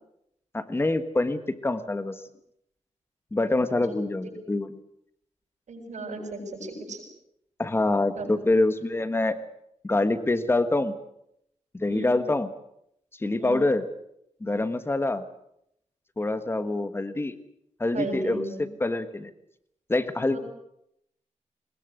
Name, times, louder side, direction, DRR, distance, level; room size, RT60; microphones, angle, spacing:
voice 1, 0.5-2.2 3.3-4.8 7.6-9.4 9.8-10.9 11.7-12.5 13.2-13.8 14.4-15.2 16.2-17.3 17.8-18.4 18.8-19.3 19.9-20.4, left 2 dB, 20° left, 11 dB, 1.4 m, -25 dB
voice 2, 5.7-7.0 8.2-8.3 11.9-12.2 13.4-13.6 17.9-18.7 20.3-20.4, right 2 dB, 75° right, 1 dB, 7.1 m, -34 dB
21.0 x 20.5 x 7.8 m, 0.76 s
wide cardioid pair, 175°, 12 cm